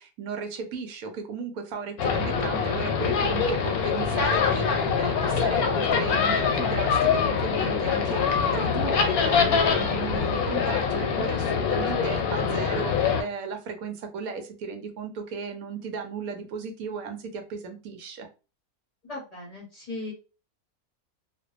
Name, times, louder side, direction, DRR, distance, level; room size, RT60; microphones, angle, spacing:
voice 1, 0.0-18.3, right 5 dB, 80° right, 5 dB, 1.1 m, -35 dB
sound 1, 2.0-13.2, left 6 dB, 85° left, 1.1 m, -24 dB
voice 2, 19.0-20.1, left 2 dB, 40° left, -3 dB, 0.6 m, -37 dB
2.6 x 2.2 x 2.4 m, 0.32 s
omnidirectional pair, 1.5 m